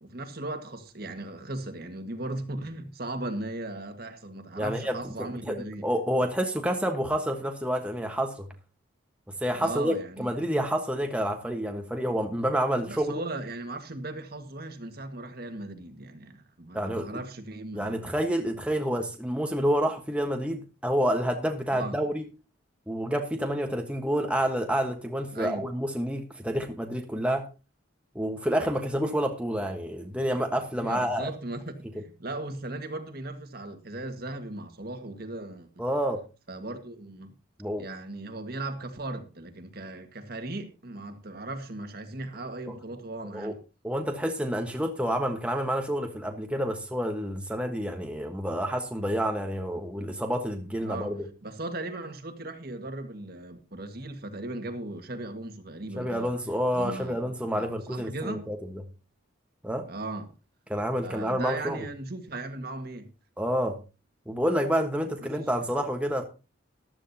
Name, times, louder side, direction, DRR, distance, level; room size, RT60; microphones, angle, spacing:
voice 1, 0.0-5.9 9.6-10.3 12.9-18.0 21.7-22.0 25.3-25.7 30.7-35.9 36.5-37.4 37.8-43.6 50.8-51.2 51.4-56.3 56.7-58.4 59.9-60.3 61.0-63.1 65.2-65.5, right 2 dB, 50° right, 1.8 m, -37 dB
voice 2, 4.6-5.6 5.8-8.5 9.3-13.2 16.7-17.1 17.7-22.2 22.9-27.5 28.1-31.3 35.8-36.2 37.6-37.9 43.3-43.5 43.8-51.3 56.0-58.6 59.6-59.9 60.7-61.8 63.4-63.8 64.3-66.2, equal, 5° right, 1.3 m, -28 dB
14.5 x 12.5 x 2.8 m
head